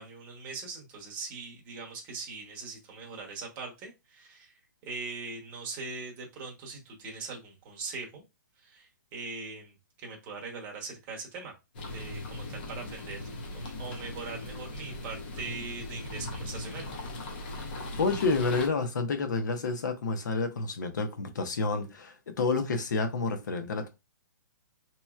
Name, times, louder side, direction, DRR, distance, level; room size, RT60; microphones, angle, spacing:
voice 1, 0.0-4.5 4.8-8.2 8.6-11.5 11.9-13.3 13.5-16.9, right 4 dB, 15° right, 0.8 m, -41 dB
sound 1, 11.7-18.7, left 2 dB, 30° left, 0.6 m, -39 dB
voice 2, 18.0-23.9, left 3 dB, 65° left, 0.9 m, -29 dB
4.2 x 3.0 x 2.3 m
hypercardioid pair, 175°, 10 cm